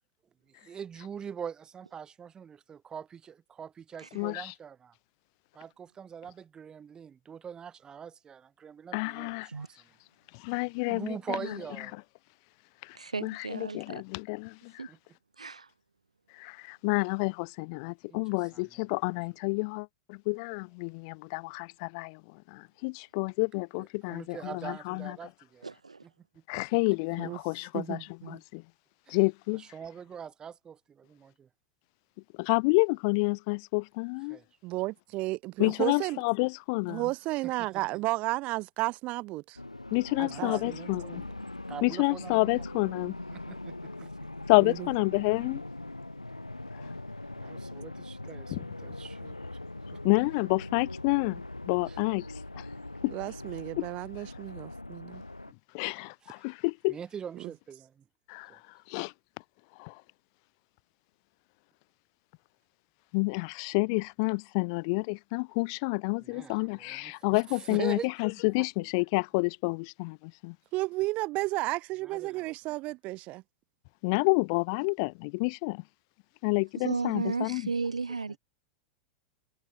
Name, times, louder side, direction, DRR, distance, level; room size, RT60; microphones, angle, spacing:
voice 1, 0.6-4.9 5.5-9.9 10.9-12.0 14.9-15.0 18.1-18.8 23.8-25.7 26.0-26.6 29.1-29.2 29.5-31.5 34.3-34.4 37.4-37.8 40.1-41.4 41.7-42.5 43.3-44.1 47.3-49.4 49.9-50.1 51.9-52.0 56.2-56.4 56.9-58.0 58.5-58.6 66.2-68.1 68.6-68.7 72.0-72.5 78.3-78.4, right 7 dB, 25° right, 4.9 m, -43 dB
voice 2, 4.1-4.5 8.9-9.5 10.4-11.2 12.8-13.0 13.2-14.9 16.4-22.2 22.5-25.2 26.5-28.6 29.1-29.6 32.4-34.4 35.6-37.0 39.9-41.2 41.8-43.2 44.5-45.6 48.5-48.6 50.0-52.3 52.5-52.6 53.0-53.1 53.8-53.9 55.7-57.0 58.3-58.5 58.9-59.1 59.8-60.0 63.1-70.6 74.0-75.8 76.4-77.7, left 31 dB, 50° left, 0.5 m, -29 dB
voice 3, 12.9-14.0 14.8-14.9 15.4-15.7 25.6-26.0 76.8-78.4, right 4 dB, 85° right, 0.4 m, -34 dB
voice 4, 27.7-28.4 34.6-36.2 36.9-39.6 40.2-40.7 44.6-44.9 53.1-55.2 57.4-57.5 70.7-73.4, right 20 dB, 40° right, 0.7 m, -33 dB
sound 1, 39.6-55.5, left 2 dB, 90° left, 2.5 m, -41 dB
figure-of-eight pair, 90°, 3 cm